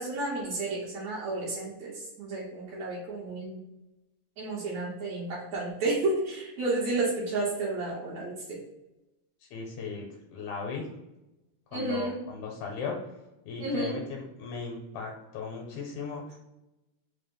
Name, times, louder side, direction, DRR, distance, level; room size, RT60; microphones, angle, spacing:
voice 1, 0.0-3.6 4.4-8.6 11.7-12.2 13.6-14.0, right 2 dB, 70° right, -6 dB, 2.0 m, -31 dB
voice 2, 9.5-10.1 10.3-10.9 11.7-13.0 13.5-16.4, left 5 dB, 75° left, -1 dB, 2.0 m, -37 dB
5.0 x 2.0 x 3.5 m, 0.95 s
omnidirectional pair, 3.5 m